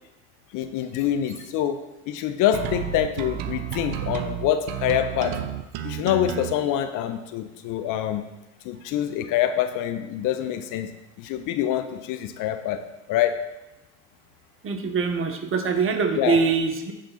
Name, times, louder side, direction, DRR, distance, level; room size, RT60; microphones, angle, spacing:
voice 1, 0.5-1.8 2.1-5.3 5.8-8.2 8.6-10.9 11.2-12.8 13.1-13.3 16.2-16.4, left 11 dB, 55° left, 9 dB, 0.9 m, -25 dB
sound 1, 2.5-6.5, right 12 dB, 60° right, 0.8 m, -31 dB
voice 2, 14.6-16.9, right 5 dB, 35° right, 6 dB, 1.2 m, -23 dB
9.2 x 4.2 x 5.7 m, 0.99 s
hypercardioid pair, 75°, 38 cm